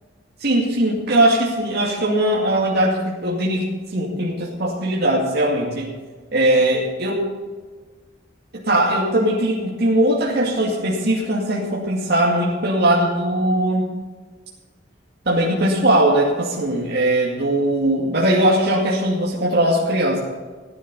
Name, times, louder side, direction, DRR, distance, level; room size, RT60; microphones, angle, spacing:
voice 1, 0.4-5.9 6.3-7.3 8.5-13.9 15.3-20.2, right 1 dB, 55° right, -5 dB, 2.4 m, -20 dB
16.0 x 10.5 x 5.5 m, 1.4 s
head